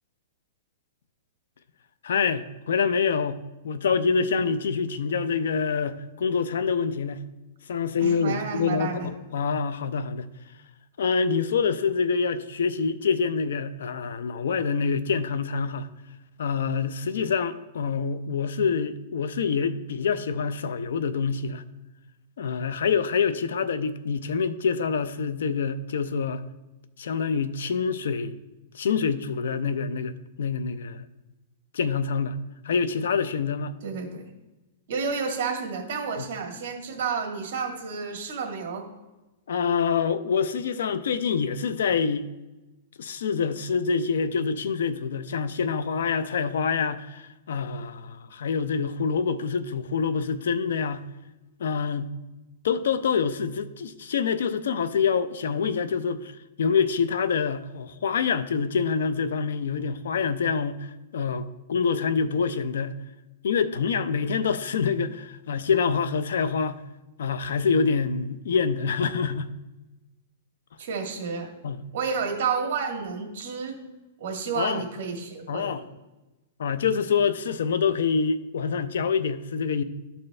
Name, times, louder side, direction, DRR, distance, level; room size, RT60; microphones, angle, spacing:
voice 1, 2.0-7.2 7.7-10.3 11.0-15.9 16.4-21.6 22.4-26.4 27.0-28.4 28.7-31.1 31.7-32.4 32.6-33.8 39.5-42.3 43.0-51.0 51.6-52.1 52.6-56.3 56.6-63.0 63.4-66.8 67.2-69.5 71.6-71.8 74.6-74.8 75.5-75.8 76.6-79.8, left 5 dB, 80° left, 0.5 m, -26 dB
voice 2, 8.0-9.1 33.8-34.2 34.9-38.8 70.8-71.5 71.9-73.8 74.2-75.8, right 5 dB, 50° right, 1.8 m, -30 dB
12.5 x 4.4 x 3.2 m
hypercardioid pair, 165°, 0 cm